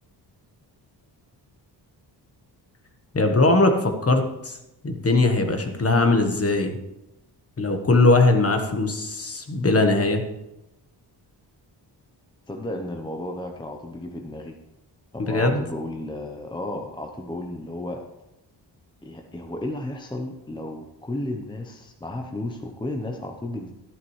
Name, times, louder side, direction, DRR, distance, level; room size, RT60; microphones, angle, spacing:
voice 1, 3.1-4.6 4.8-6.8 7.6-10.2 15.2-15.6, left 2 dB, 35° left, 6 dB, 1.3 m, -20 dB
voice 2, 12.5-14.6 15.3-18.0 19.0-23.7, left 1 dB, 10° left, 2 dB, 0.8 m, -33 dB
12.5 x 10.5 x 3.2 m, 0.91 s
cardioid pair, 105°, 43 cm